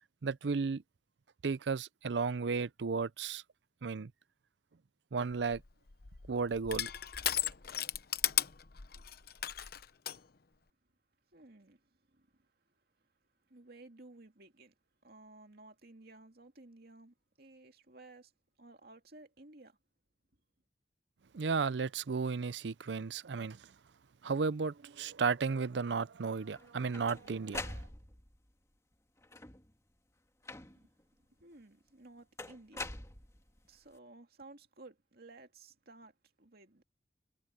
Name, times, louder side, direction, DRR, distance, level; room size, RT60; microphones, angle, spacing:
voice 1, 0.2-0.8 1.4-3.4 3.8-4.1 5.1-5.6 6.3-6.9 21.3-23.7 24.2-27.8, right 5 dB, 80° right, 0.6 m, -34 dB
Crushing, 5.3-10.2, left 11 dB, 60° left, 0.9 m, -36 dB
voice 2, 11.3-13.1 13.5-14.7 15.0-18.3 18.6-19.8 30.6-30.9 31.4-32.9 33.7-36.8, right 2 dB, 60° right, 2.5 m, -56 dB
sound 1, 26.5-28.4 29.2-29.8 30.5-31.0 32.4-33.7, left 2 dB, 15° left, 2.1 m, -44 dB
head